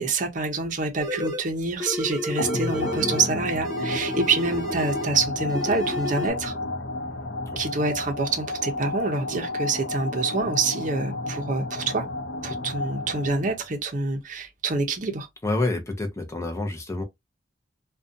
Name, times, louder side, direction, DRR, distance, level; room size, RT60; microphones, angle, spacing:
voice 1, 0.0-6.5 7.6-12.1 12.4-15.3, right 3 dB, 45° right, 0.6 m, -26 dB
sound 1, 1.0-1.5 1.8-3.3 3.6-5.2 5.5-6.3, equal, 20° right, 0.9 m, -32 dB
sound 2, 2.4-13.7, left 2 dB, 80° left, 0.5 m, -31 dB
voice 2, 15.4-17.0, left 2 dB, 15° left, 0.6 m, -28 dB
2.5 x 2.2 x 2.5 m
head